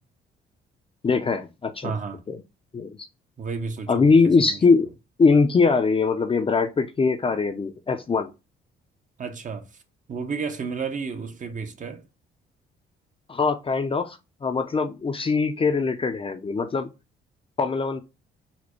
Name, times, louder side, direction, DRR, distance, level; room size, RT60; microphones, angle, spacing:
voice 1, 1.0-1.9 2.3-2.4 2.7-3.0 3.9-4.9 5.2-8.3 13.3-16.9 17.6-18.0, left 4 dB, 30° left, 0.5 m, -22 dB
voice 2, 1.8-2.2 3.4-4.1 4.4-4.6 9.2-9.7 10.1-12.0, right 5 dB, 40° right, 0.7 m, -32 dB
4.2 x 2.1 x 2.9 m
cardioid pair, 90°, 20 cm